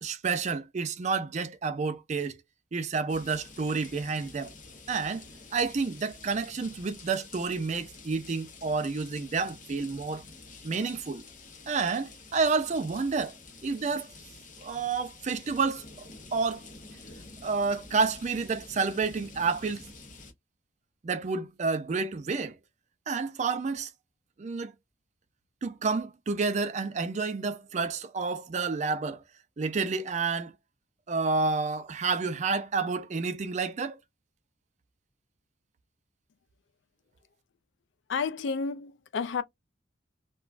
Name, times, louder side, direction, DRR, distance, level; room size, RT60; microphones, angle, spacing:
voice 1, 0.0-2.4 2.7-4.5 4.9-5.2 5.5-10.2 10.6-11.2 11.7-14.1 14.6-15.8 16.3-16.7 17.4-19.9 21.0-22.6 23.1-23.9 24.4-24.7 25.6-29.2 29.6-30.5 31.1-34.0, right 4 dB, 35° right, 0.4 m, -29 dB
sound 1, 3.1-20.3, left 3 dB, 40° left, 0.8 m, -49 dB
voice 2, 38.1-39.4, left 5 dB, 65° left, 0.4 m, -31 dB
3.0 x 2.2 x 2.4 m
head